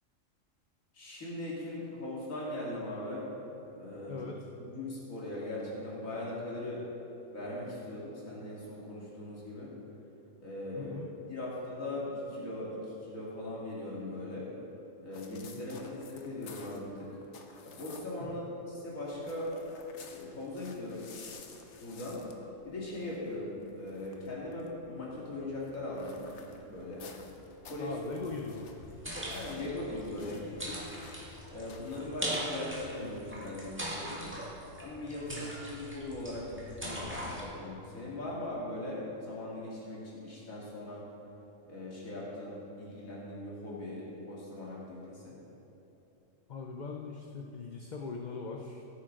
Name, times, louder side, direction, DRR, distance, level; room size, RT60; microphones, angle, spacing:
voice 1, 0.9-3.3 3.6-4.1 4.6-6.8 7.3-9.7 10.4-11.0 11.3-14.5 15.0-17.1 17.6-19.5 20.1-21.1 21.8-22.2 22.6-27.0 27.6-27.9 29.3-30.9 31.5-34.3 34.8-41.0 41.7-45.4, left 1 dB, 90° left, -6 dB, 2.6 m, -40 dB
voice 2, 4.1-4.4 10.8-11.1 15.5-15.6 18.2-18.5 27.8-28.7 35.3-35.5 46.5-48.9, left 4 dB, 45° left, 1 dB, 0.7 m, -40 dB
sound 1, 15.1-18.3 18.6-33.8, left 4 dB, 60° left, 1.2 m, -54 dB
sound 2, 28.8-37.4, equal, 10° right, 1.8 m, -41 dB
16.0 x 9.2 x 3.8 m, 2.9 s
omnidirectional pair, 1.4 m